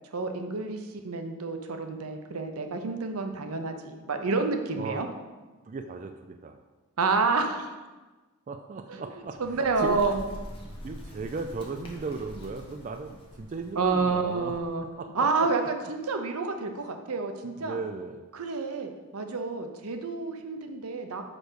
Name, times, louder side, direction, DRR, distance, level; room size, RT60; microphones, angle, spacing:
voice 1, 0.1-5.1 7.0-7.7 8.9-10.2 13.7-14.8 15.1-17.8 18.3-21.2, right 4 dB, 90° right, 6 dB, 0.7 m, -29 dB
voice 2, 5.7-6.6 8.5-10.1 10.8-14.5 15.0-15.1 15.4-15.5 17.6-18.2, right 4 dB, 35° right, 6 dB, 0.3 m, -36 dB
Bird, 9.2-14.9, equal, 25° left, 1.1 m, -45 dB
5.0 x 5.0 x 6.2 m, 1.2 s
head